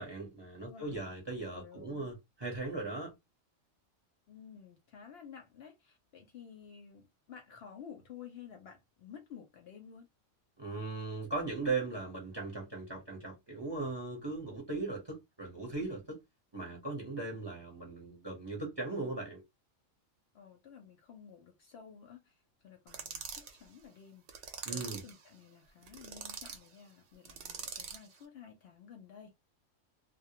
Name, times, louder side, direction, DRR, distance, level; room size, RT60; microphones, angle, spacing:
voice 1, 0.0-3.1 10.6-16.2 16.5-19.4 24.6-25.0, right 3 dB, 25° right, 0.7 m, -38 dB
voice 2, 0.7-1.0 1.5-2.1 4.3-10.1 20.3-22.4 22.6-24.2 24.6-29.3, left 7 dB, 65° left, 0.7 m, -52 dB
sound 1, 22.9-23.5 24.3-25.1 25.8-26.6 27.2-28.1, right 6 dB, 65° right, 0.9 m, -43 dB
2.2 x 2.0 x 2.8 m
omnidirectional pair, 1.3 m